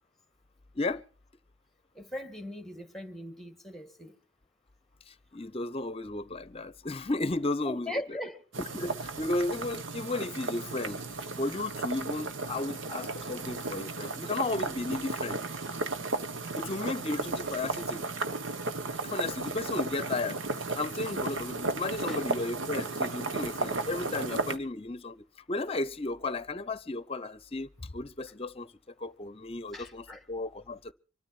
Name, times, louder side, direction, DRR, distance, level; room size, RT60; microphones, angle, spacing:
voice 1, 0.7-1.0 5.1-8.0 8.6-11.0 11.4-15.4 16.6-18.1 19.0-20.4 20.7-28.7 29.0-30.9, left 2 dB, 30° left, 0.8 m, -34 dB
voice 2, 1.9-4.1 7.6-8.4 22.1-22.2 29.7-30.2, left 1 dB, ahead, 1.9 m, -39 dB
sound 1, 8.5-24.6, right 3 dB, 70° right, 1.4 m, -34 dB
25.0 x 13.0 x 4.3 m
head